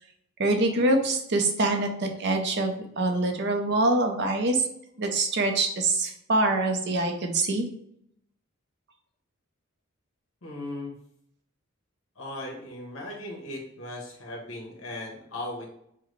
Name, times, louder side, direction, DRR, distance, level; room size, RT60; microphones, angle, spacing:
voice 1, 0.4-4.7 5.0-7.7, right 2 dB, 55° right, 4 dB, 0.6 m, -25 dB
voice 2, 10.4-10.9 12.1-15.7, left 1 dB, 70° left, -1 dB, 1.2 m, -37 dB
5.8 x 2.2 x 3.1 m, 0.71 s
head